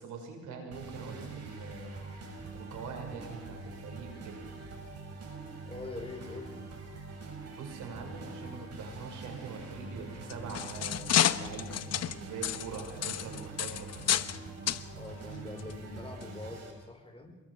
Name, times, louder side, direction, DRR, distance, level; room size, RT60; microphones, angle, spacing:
voice 1, 0.0-1.9 2.5-4.4 7.5-11.8 12.1-14.0, right 5 dB, 85° right, 3 dB, 5.7 m, -43 dB
sound 1, 0.7-16.7, right 3 dB, 55° right, 6.6 m, -44 dB
voice 2, 5.6-6.7 14.9-17.4, left 2 dB, 20° left, 4 dB, 4.5 m, -44 dB
sound 2, 10.1-14.4 14.7-14.8 15.6-15.7 16.2-16.3, left 10 dB, 55° left, 0.9 m, -30 dB
28.0 x 22.5 x 4.8 m, 1.3 s
cardioid pair, 90°, 30 cm